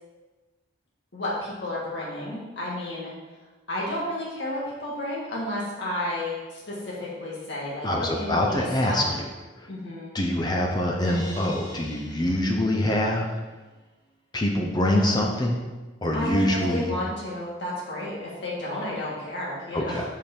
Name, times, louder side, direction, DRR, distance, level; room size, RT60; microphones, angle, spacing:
voice 1, 1.1-3.1 3.7-9.1 9.7-10.1 14.8-15.2 16.1-20.1, left 1 dB, 65° left, -6 dB, 1.7 m, -32 dB
voice 2, 7.8-9.2 9.6-9.7 10.1-13.3 14.3-15.6 16.0-16.9 19.7-20.1, left 1 dB, 20° left, 0 dB, 0.6 m, -25 dB
Crash cymbal, 11.0-13.2, equal, 40° left, 1.9 m, -43 dB
5.5 x 5.0 x 4.4 m, 1.2 s
head